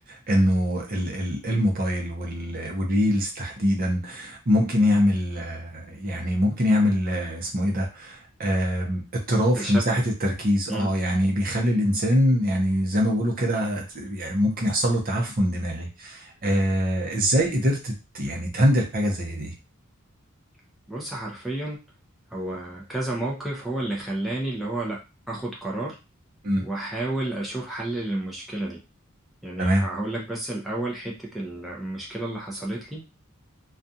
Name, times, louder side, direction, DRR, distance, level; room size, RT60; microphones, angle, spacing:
voice 1, 0.1-9.0 9.3-19.5 26.4-26.6 29.6-29.9, equal, 45° right, 0 dB, 0.7 m, -24 dB
voice 2, 20.9-21.8 22.3-25.0 25.3-25.9 26.6-28.8 29.4-33.0, right 1 dB, ahead, -5 dB, 0.6 m, -31 dB
2.4 x 2.4 x 2.7 m, 0.28 s
head